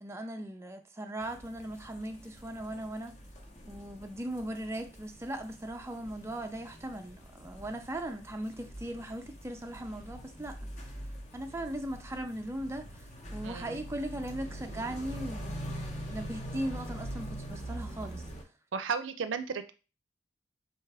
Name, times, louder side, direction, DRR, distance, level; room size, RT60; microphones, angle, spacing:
voice 1, 0.0-3.2 3.7-10.6 11.3-13.0 13.3-18.2, right 1 dB, 15° right, 0.4 m, -38 dB
sound 1, 1.2-18.4, equal, 35° left, 1.1 m, -44 dB
voice 2, 13.4-13.8 18.7-19.7, right 5 dB, 75° right, 0.5 m, -34 dB
4.2 x 3.4 x 3.3 m
head